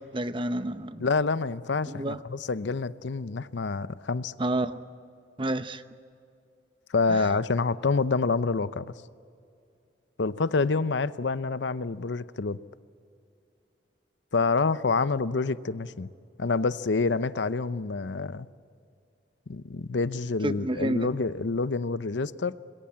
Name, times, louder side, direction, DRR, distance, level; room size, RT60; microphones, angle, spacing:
voice 1, 0.0-1.0 1.9-2.2 4.4-4.8 5.4-5.8 7.1-7.2 20.4-21.1, right 1 dB, 30° right, 11 dB, 0.8 m, -29 dB
voice 2, 1.0-4.3 6.9-8.9 10.2-12.6 14.3-16.1 16.4-18.5 19.5-22.5, left 4 dB, 80° left, 15 dB, 0.7 m, -27 dB
26.5 x 21.5 x 8.6 m, 2.4 s
head